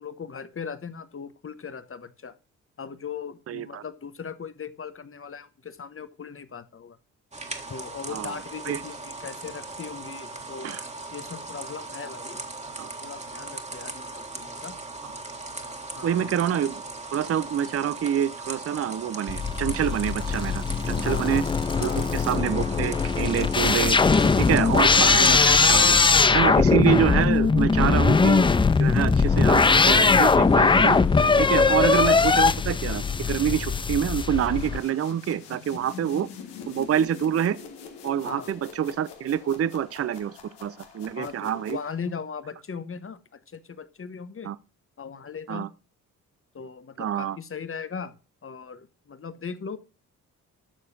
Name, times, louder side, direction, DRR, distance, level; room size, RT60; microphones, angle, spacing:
voice 1, 0.0-2.3 2.8-7.0 7.7-10.7 11.1-12.4 12.8-14.8 15.9-16.3 21.0-21.4 21.8-22.1 24.5-24.8 31.6-31.9 38.2-38.5 41.2-44.5 45.0-45.7 46.5-48.2 48.4-49.8, left 6 dB, 30° left, 1.0 m, -38 dB
voice 2, 3.5-3.8 8.1-8.4 8.7-8.8 10.6-10.8 12.8-12.9 16.0-16.8 17.1-21.4 21.8-24.0 24.4-26.0 26.3-28.4 28.8-31.0 31.4-36.3 36.7-37.6 38.0-40.3 40.6-41.8 44.4-44.6 45.5-45.7 47.0-47.4, right 9 dB, 35° right, 0.6 m, -26 dB
sound 1, 7.3-25.9, right 3 dB, 15° right, 1.7 m, -38 dB
sound 2, 19.3-34.8, left 4 dB, 15° left, 0.4 m, -20 dB
sound 3, 27.9-42.2, left 7 dB, 70° left, 1.5 m, -46 dB
11.5 x 6.7 x 2.6 m
hypercardioid pair, 40°, 42 cm